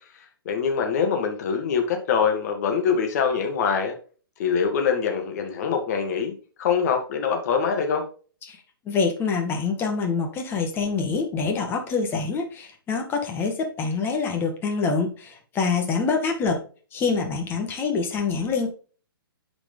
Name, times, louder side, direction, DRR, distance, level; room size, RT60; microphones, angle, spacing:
voice 1, 0.1-3.9 4.4-8.1, left 6 dB, 45° left, 4 dB, 2.3 m, -24 dB
voice 2, 8.9-16.6 16.9-18.7, left 4 dB, 20° left, 3 dB, 1.8 m, -25 dB
9.0 x 5.0 x 3.9 m, 0.38 s
hypercardioid pair, 145°, 12 cm